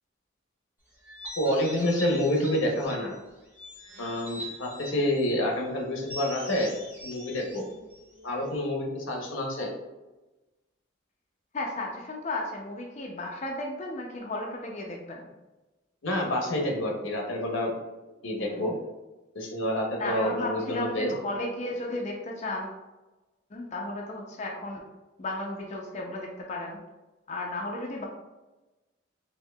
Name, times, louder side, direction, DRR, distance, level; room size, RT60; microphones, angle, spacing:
sound 1, 1.0-3.1 3.5-5.4 6.0-8.5, equal, 10° right, 1.0 m, -43 dB
voice 1, 1.4-3.1 4.0-6.7 7.0-7.6 8.2-9.7 16.0-17.7 18.2-18.7 19.3-21.1, left 1 dB, 85° left, 0 dB, 0.8 m, -28 dB
voice 2, 11.5-15.3 18.4-18.7 20.0-22.8 23.5-24.8 25.2-26.8 27.3-28.0, left 2 dB, 35° left, -1 dB, 0.4 m, -34 dB
4.3 x 2.8 x 2.2 m, 1.1 s
head